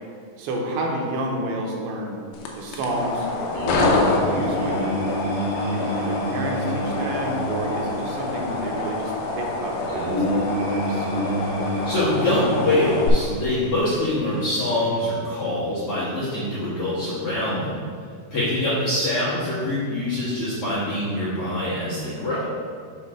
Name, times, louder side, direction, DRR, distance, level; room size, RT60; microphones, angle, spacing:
voice 1, 0.4-2.2 2.5-5.2 5.7-11.1, right 1 dB, 80° right, 0 dB, 2.8 m, -30 dB
sound 1, 2.3-13.1, left 3 dB, 80° left, 2.5 m, -27 dB
sound 2, 3.5-14.8, equal, 60° right, 2.0 m, -29 dB
voice 2, 11.8-17.8 18.3-22.5, left 1 dB, 55° left, -12 dB, 1.6 m, -24 dB
7.4 x 3.7 x 5.0 m, 2.1 s
omnidirectional pair, 4.5 m